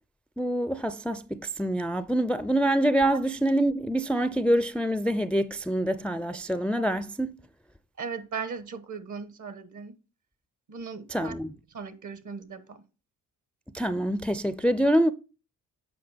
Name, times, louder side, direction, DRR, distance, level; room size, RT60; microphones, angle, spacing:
voice 1, 0.4-7.4 11.1-11.5 13.7-15.1, right 1 dB, 5° left, 0.3 m, -26 dB
voice 2, 8.0-9.9 10.7-11.4 11.7-12.8, right 5 dB, 60° right, 1.1 m, -37 dB
7.8 x 5.0 x 3.5 m
cardioid pair, 60°, 35 cm